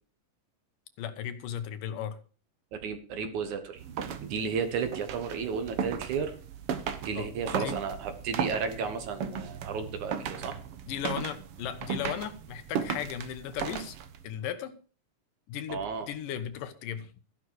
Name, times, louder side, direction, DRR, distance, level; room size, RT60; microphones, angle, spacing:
voice 1, 1.0-2.2 7.1-7.8 10.9-14.0 14.2-14.7 15.5-17.1, left 9 dB, 70° left, 10 dB, 2.7 m, -36 dB
voice 2, 2.7-3.8 4.2-6.4 7.0-10.6 15.7-16.1, right 6 dB, 65° right, 8 dB, 2.5 m, -33 dB
sound 1, 3.8-14.3, right 7 dB, 80° right, 1.2 m, -36 dB
13.5 x 11.0 x 4.7 m, 0.37 s
omnidirectional pair, 4.1 m